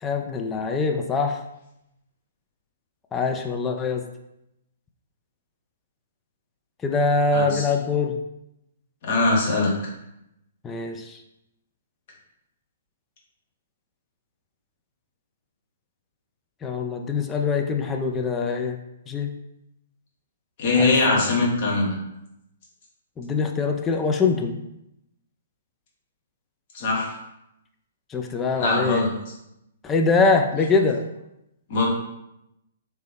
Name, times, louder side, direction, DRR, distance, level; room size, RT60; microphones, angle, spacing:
voice 1, 0.0-1.4 3.1-4.0 6.8-8.2 10.6-11.2 16.6-18.8 19.1-19.3 20.8-21.2 23.2-24.6 28.1-29.1 29.8-31.0, left 4 dB, 15° left, 3 dB, 0.3 m, -23 dB
voice 2, 7.3-7.7 9.0-9.8 20.6-22.0 26.7-27.2 28.6-29.1 31.7-31.9, left 3 dB, 45° left, -3 dB, 1.2 m, -21 dB
3.2 x 3.0 x 3.3 m, 0.85 s
figure-of-eight pair, 120°, 0 cm